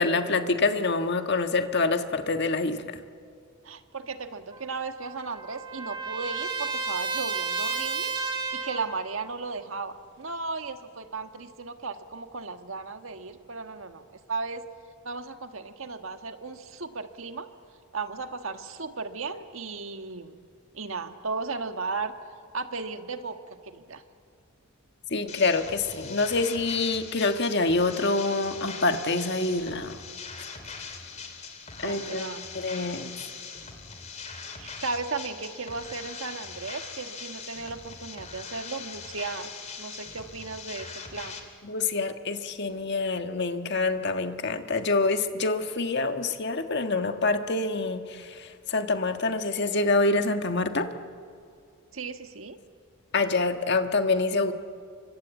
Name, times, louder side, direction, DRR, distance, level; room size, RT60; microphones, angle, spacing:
voice 1, 0.0-3.0 25.1-30.0 31.8-32.3 32.5-33.1 41.6-50.9 53.1-54.5, left 3 dB, 55° left, 7 dB, 1.5 m, -26 dB
voice 2, 3.6-8.1 8.5-14.7 15.0-17.5 17.9-20.4 20.7-22.1 22.5-24.0 31.8-32.5 34.6-41.4 51.9-52.6, right 4 dB, 70° right, 7 dB, 1.6 m, -35 dB
Trumpet, 4.5-8.9, right 4 dB, 20° right, 3.5 m, -32 dB
sound 1, 25.3-41.4, left 5 dB, 35° left, 3.0 m, -41 dB
29.5 x 25.0 x 8.2 m, 2.4 s
head